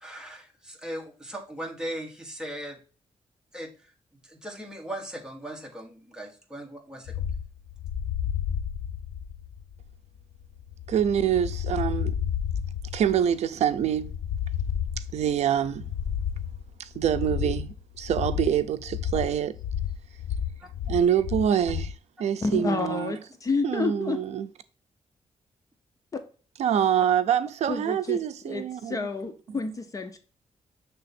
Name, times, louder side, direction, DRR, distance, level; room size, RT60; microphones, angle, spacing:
voice 1, 0.0-2.8 3.5-3.7 4.3-7.1 20.6-20.7 22.2-22.3, right 1 dB, 5° right, 1.4 m, -38 dB
sound 1, 7.1-22.0, left 8 dB, 80° left, 0.6 m, -32 dB
voice 2, 10.9-12.2 12.9-14.1 15.1-15.9 16.8-19.6 20.9-23.2 23.6-24.5 26.6-29.1 29.5-29.6, right 9 dB, 75° right, 0.4 m, -26 dB
voice 3, 22.4-24.2 26.1-26.2 27.7-28.2 28.4-30.2, left 3 dB, 30° left, 0.7 m, -29 dB
6.7 x 3.4 x 4.2 m
wide cardioid pair, 140°, 11 cm